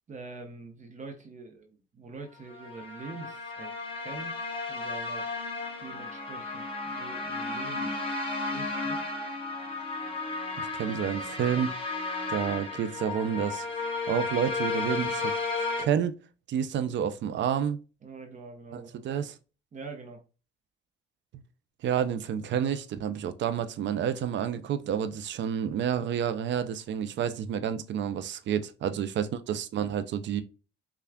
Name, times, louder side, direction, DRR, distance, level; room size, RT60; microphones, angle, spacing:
voice 1, 0.1-4.3 4.7-5.3 5.8-7.9 8.5-9.0 18.0-19.0 19.7-20.2 29.2-29.3, right 4 dB, 40° right, 0.8 m, -44 dB
sound 1, 2.5-15.8, left 3 dB, 25° left, 1.2 m, -33 dB
voice 2, 10.6-11.7 12.3-13.6 14.1-16.1 16.5-17.8 18.7-19.4 21.3-21.4 21.8-30.4, right 8 dB, 65° right, 0.5 m, -29 dB
5.6 x 2.4 x 2.2 m
cardioid pair, 90°, 20 cm